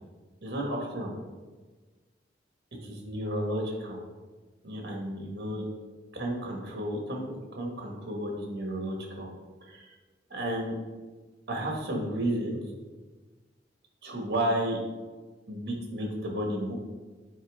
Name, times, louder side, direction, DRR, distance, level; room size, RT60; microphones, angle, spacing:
voice 1, 0.4-1.1 2.8-4.0 4.6-5.7 6.1-7.2 7.5-9.3 9.6-9.9 10.3-10.8 11.5-12.6 14.0-14.8 15.5-16.7, right 1 dB, 60° right, 0 dB, 1.4 m, -32 dB
8.5 x 4.3 x 3.5 m, 1.3 s
head